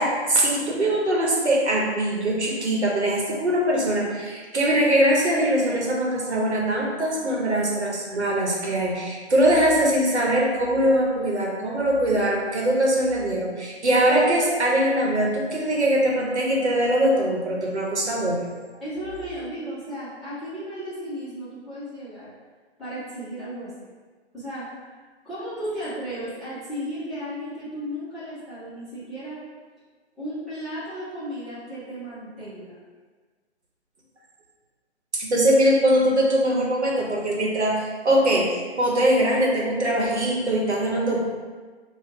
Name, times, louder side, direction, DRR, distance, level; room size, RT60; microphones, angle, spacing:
voice 1, 0.0-18.4 35.1-41.3, right 1 dB, 80° right, -2 dB, 1.0 m, -22 dB
voice 2, 18.8-22.3 22.8-23.7 24.3-24.9 25.2-29.4 30.2-32.8, equal, ahead, -16 dB, 0.6 m, -34 dB
4.2 x 2.3 x 2.9 m, 1.4 s
figure-of-eight pair, 135°, 33 cm